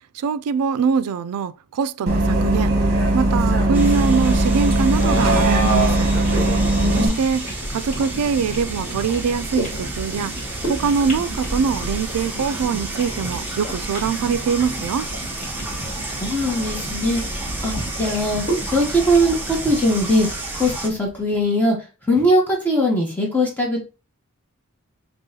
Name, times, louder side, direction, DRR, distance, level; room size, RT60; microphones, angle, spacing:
voice 1, 0.1-2.7 3.1-6.1 7.0-10.4 10.7-15.1, right 6 dB, 80° right, 0.3 m, -23 dB
Bus, 2.1-7.1, right 2 dB, 40° right, 1.2 m, -18 dB
sound 1, 3.7-20.9, right 2 dB, 10° right, 0.7 m, -32 dB
sound 2, 6.2-21.3, right 1 dB, 35° left, 2.2 m, -32 dB
voice 2, 6.8-7.2 16.2-18.4 18.7-20.3 20.6-21.8 22.1-23.8, equal, 10° left, 1.0 m, -20 dB
5.4 x 2.9 x 2.8 m
head